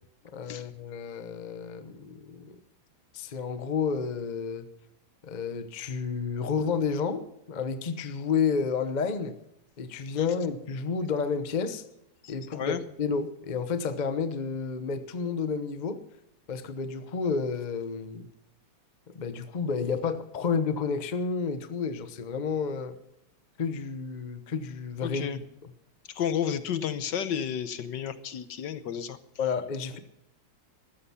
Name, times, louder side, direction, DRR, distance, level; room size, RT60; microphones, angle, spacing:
voice 1, 0.2-2.6 3.1-4.7 5.2-9.3 9.8-11.8 12.3-16.0 16.5-18.3 19.1-22.9 23.6-25.7 29.4-30.0, left 5 dB, 30° left, 11 dB, 0.8 m, -31 dB
voice 2, 12.2-12.8 25.0-25.4 26.1-29.2, left 8 dB, 65° left, 13 dB, 1.4 m, -32 dB
14.0 x 13.0 x 5.7 m, 0.81 s
omnidirectional pair, 2.2 m